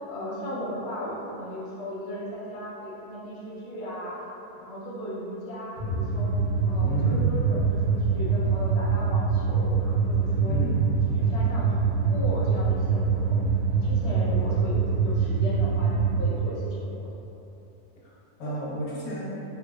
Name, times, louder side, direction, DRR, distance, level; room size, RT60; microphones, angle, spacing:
voice 1, 0.1-4.2 4.6-6.3 6.6-10.6 11.1-13.4 13.7-17.1, equal, 60° left, -6 dB, 0.7 m, -36 dB
sound 1, 5.8-16.2, right 5 dB, 35° right, 1.0 m, -24 dB
voice 2, 6.8-7.3 10.5-10.9 18.0-19.4, right 1 dB, 85° left, -7 dB, 1.3 m, -32 dB
4.8 x 2.1 x 2.3 m, 3.0 s
omnidirectional pair, 1.7 m